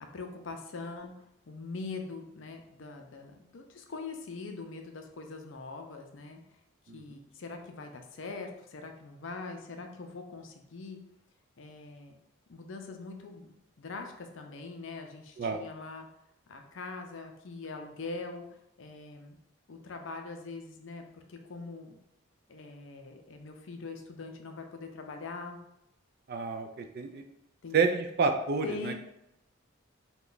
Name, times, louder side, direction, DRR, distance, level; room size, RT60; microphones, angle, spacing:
voice 1, 0.0-6.4 6.9-11.0 11.6-12.2 12.5-13.5 13.8-16.1 16.5-19.3 19.7-22.0 22.5-25.6 27.6-27.8 28.6-28.9, left 3 dB, 65° left, 4 dB, 0.5 m, -42 dB
voice 2, 26.3-27.2 27.7-28.9, right 4 dB, 45° right, 6 dB, 0.3 m, -29 dB
3.1 x 2.2 x 3.8 m, 0.82 s
head